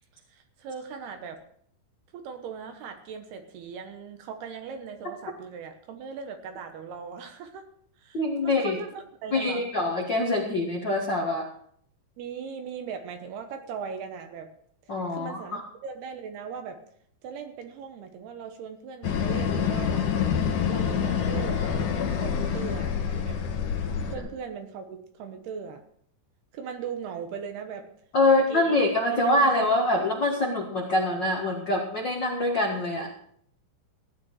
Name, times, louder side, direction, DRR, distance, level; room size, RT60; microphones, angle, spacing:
voice 1, 0.1-1.4 2.1-7.7 8.0-9.7 12.2-14.5 14.9-16.8 17.2-20.0 20.6-21.7 22.1-23.4 24.1-25.8 26.5-27.9 28.2-28.8 29.1-29.6, right 6 dB, 70° right, 7 dB, 3.0 m, -39 dB
voice 2, 8.1-8.8 9.3-11.4 14.9-15.6 28.1-33.1, left 2 dB, 75° left, 0 dB, 1.0 m, -24 dB
sound 1, 19.0-24.2, left 7 dB, 60° left, 2.5 m, -27 dB
16.0 x 10.5 x 4.8 m, 0.64 s
omnidirectional pair, 5.0 m